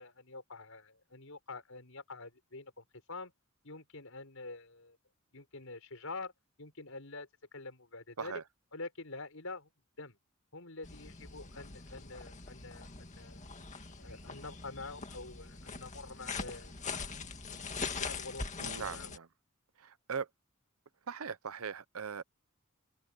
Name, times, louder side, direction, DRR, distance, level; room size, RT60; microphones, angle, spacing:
voice 1, 0.0-3.3 3.6-5.0 5.3-6.3 6.6-8.4 8.7-9.7 10.0-10.2 10.5-13.5 14.0-16.7 18.0-19.1, left 3 dB, 70° left, 5.5 m, -46 dB
sound 1, 10.8-19.2, left 4 dB, 35° left, 2.1 m, -42 dB
voice 2, 18.6-19.3 19.8-20.3 21.1-22.2, right 6 dB, 90° right, 0.8 m, -40 dB
open air
head